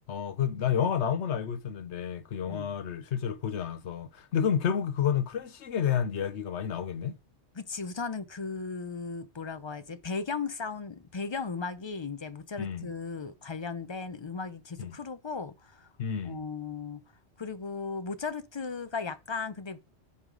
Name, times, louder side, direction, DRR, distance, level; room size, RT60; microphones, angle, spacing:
voice 1, 0.1-7.2 12.6-12.9 14.8-15.0 16.0-16.4, left 8 dB, 75° left, 1.1 m, -30 dB
voice 2, 7.6-15.9 16.2-17.0 17.4-19.8, left 4 dB, 35° left, 0.5 m, -36 dB
14.5 x 4.9 x 3.8 m
omnidirectional pair, 1.2 m